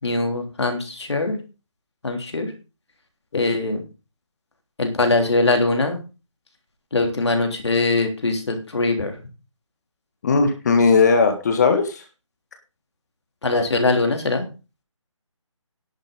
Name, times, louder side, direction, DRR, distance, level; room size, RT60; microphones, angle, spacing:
voice 1, 0.0-1.4 2.0-2.5 3.3-3.8 4.8-6.0 6.9-9.1 13.4-14.5, left 2 dB, 60° left, 4 dB, 3.4 m, -22 dB
voice 2, 10.2-12.0, left 4 dB, 35° left, 7 dB, 1.6 m, -17 dB
11.0 x 7.6 x 5.4 m, 0.32 s
figure-of-eight pair, 150°, 16 cm